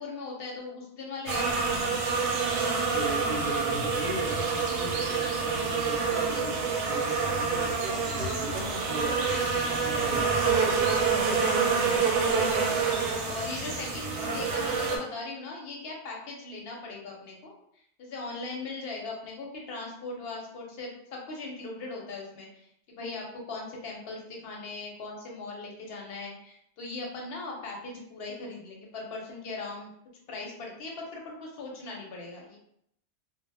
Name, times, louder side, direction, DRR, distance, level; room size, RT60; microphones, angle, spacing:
voice 1, 0.0-2.2 8.1-8.3 11.3-17.5 18.0-29.9 30.3-32.6, left 3 dB, 65° left, -1 dB, 0.7 m, -39 dB
sound 1, 1.3-15.0, right 5 dB, 90° right, 0.9 m, -27 dB
voice 2, 2.9-6.6 6.9-10.4, right 2 dB, 60° right, -3 dB, 0.8 m, -38 dB
2.0 x 2.0 x 3.3 m, 0.74 s
omnidirectional pair, 1.2 m